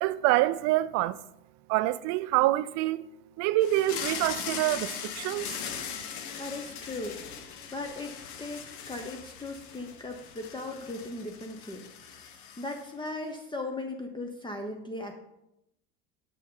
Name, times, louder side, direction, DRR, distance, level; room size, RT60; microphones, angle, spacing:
voice 1, 0.0-1.2 1.7-3.1 3.4-5.5, right 16 dB, 55° right, 0.5 m, -26 dB
sound 1, 3.6-13.1, left 7 dB, 55° left, 1.1 m, -40 dB
voice 2, 6.4-7.2 7.7-8.1 8.4-15.1, left 2 dB, 15° left, 0.9 m, -38 dB
6.7 x 6.1 x 3.8 m
hypercardioid pair, 80°, 33 cm